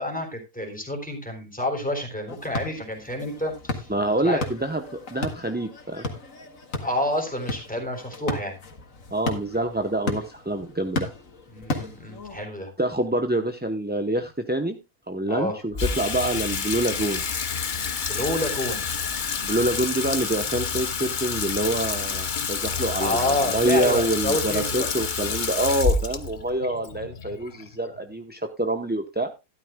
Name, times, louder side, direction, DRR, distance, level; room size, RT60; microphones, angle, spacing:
voice 1, 0.0-3.9 4.2-4.5 6.8-8.6 11.5-12.7 15.3-15.6 18.1-18.8 23.0-24.9, left 1 dB, 5° left, 3 dB, 3.5 m, -28 dB
sound 1, 2.3-12.4, left 2 dB, 70° left, 2.1 m, -35 dB
voice 2, 3.9-6.1 9.1-11.1 12.8-14.8 15.1-17.2 19.4-23.2 23.5-29.3, right 1 dB, 10° right, 5 dB, 0.6 m, -26 dB
Water tap faucet / Sink (filling or washing), 15.7-28.1, left 5 dB, 40° left, 0.9 m, -28 dB
12.5 x 12.5 x 2.2 m, 0.25 s
omnidirectional pair, 1.4 m